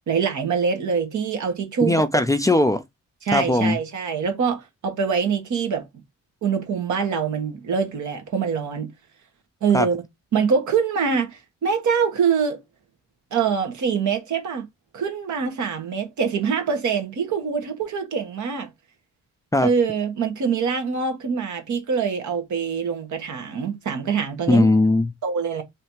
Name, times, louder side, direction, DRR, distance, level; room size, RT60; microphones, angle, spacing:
voice 1, 0.1-2.2 3.2-5.8 6.4-8.9 9.6-10.0 10.3-12.6 13.3-14.6 14.9-18.7 19.6-24.7 25.2-25.6, right 6 dB, 80° right, 1.4 m, -24 dB
voice 2, 1.8-2.8 3.3-3.8 9.7-9.9 19.5-19.7 24.5-25.1, left 2 dB, 10° left, 0.4 m, -18 dB
3.2 x 2.7 x 4.5 m
wide cardioid pair, 130°, 29 cm